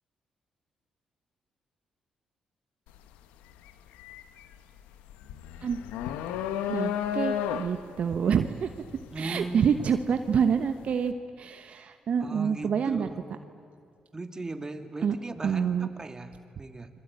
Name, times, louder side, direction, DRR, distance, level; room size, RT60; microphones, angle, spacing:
sound 1, 2.9-3.1 3.5-10.5, left 9 dB, 90° left, 1.1 m, -33 dB
voice 1, 6.7-8.7 9.2-13.1 15.0-15.2 15.4-15.9, right 7 dB, 60° right, 8 dB, 1.1 m, -27 dB
voice 2, 9.1-9.9 12.2-13.2 14.1-16.9, right 2 dB, 25° right, 7 dB, 2.5 m, -38 dB
29.0 x 22.5 x 8.8 m, 2.3 s
supercardioid pair, 55°, 2 cm